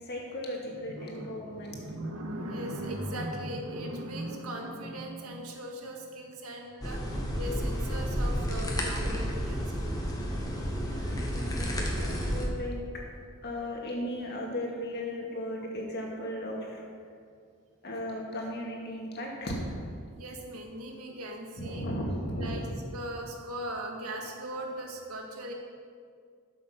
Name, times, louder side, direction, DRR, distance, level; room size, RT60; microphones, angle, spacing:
voice 1, 0.1-1.7 10.9-12.8 13.4-16.8 17.8-19.7 21.6-22.5, equal, 50° left, -1 dB, 2.1 m, -36 dB
voice 2, 0.7-9.9 12.2-12.3 15.6-15.7 17.0-17.2 20.0-21.9 22.4-22.7 22.9-25.5, right 1 dB, 85° right, 1 dB, 1.8 m, -39 dB
sound 1, 6.8-12.4, equal, 15° left, 1.5 m, -31 dB
12.0 x 7.4 x 5.9 m, 2.1 s
head